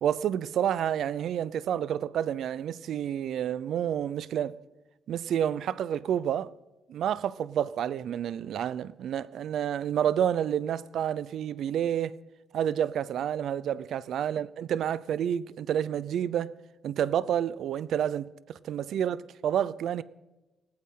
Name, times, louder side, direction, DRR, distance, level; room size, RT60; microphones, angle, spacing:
voice 1, 0.0-4.6 5.1-6.5 6.9-12.1 12.5-16.5 16.8-20.0, right 9 dB, 75° right, 0.6 m, -29 dB
19.5 x 16.5 x 3.9 m
cardioid pair, 145°, 0 cm